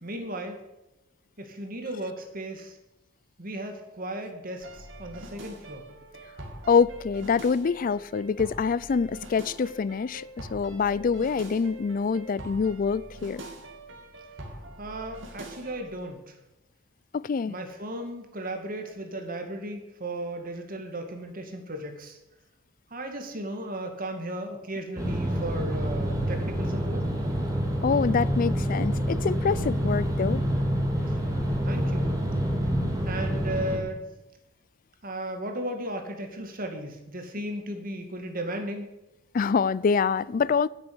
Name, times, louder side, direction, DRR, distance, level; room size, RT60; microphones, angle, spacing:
voice 1, 0.0-0.6 1.4-2.7 3.4-5.8 14.8-16.3 17.5-22.2 22.9-27.0 31.6-32.1 33.1-34.0 35.0-38.9, right 1 dB, 45° right, 2.2 m, -35 dB
sound 1, 4.6-15.9, right 1 dB, 75° right, 2.7 m, -44 dB
voice 2, 6.7-13.4 17.1-17.5 27.8-30.4 39.3-40.7, left 5 dB, 45° left, 0.4 m, -25 dB
sound 2, 25.0-33.8, equal, 20° right, 2.6 m, -27 dB
10.5 x 8.0 x 8.7 m
head